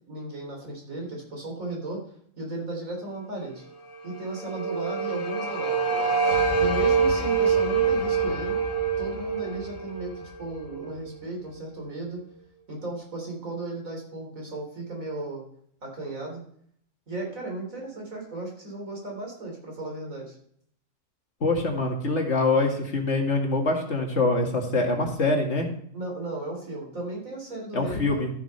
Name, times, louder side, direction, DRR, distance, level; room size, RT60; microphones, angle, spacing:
voice 1, 0.1-2.0 2.4-3.6 4.0-6.1 6.6-8.6 9.0-12.2 12.7-15.4 15.8-16.4 17.1-20.4 25.9-28.3, right 2 dB, 85° right, 0 dB, 4.0 m, -35 dB
sound 1, 4.1-11.1, right 5 dB, 90° left, 2.1 m, -25 dB
voice 2, 21.4-25.7 27.7-28.3, left 3 dB, 60° left, 1 dB, 2.3 m, -24 dB
13.5 x 7.2 x 4.3 m, 0.65 s
omnidirectional pair, 1.4 m